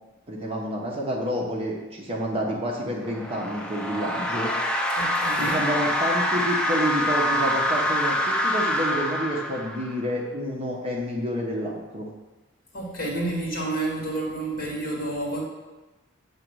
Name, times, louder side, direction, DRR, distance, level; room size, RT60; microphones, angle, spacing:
voice 1, 0.3-4.5 5.4-12.1, equal, 30° right, -2 dB, 0.8 m, -29 dB
sound 1, 3.0-10.0, equal, 5° left, 0.4 m, -25 dB
voice 2, 4.9-5.6 12.7-15.4, right 2 dB, 45° left, -2 dB, 1.7 m, -29 dB
7.5 x 3.0 x 6.1 m, 1.2 s
head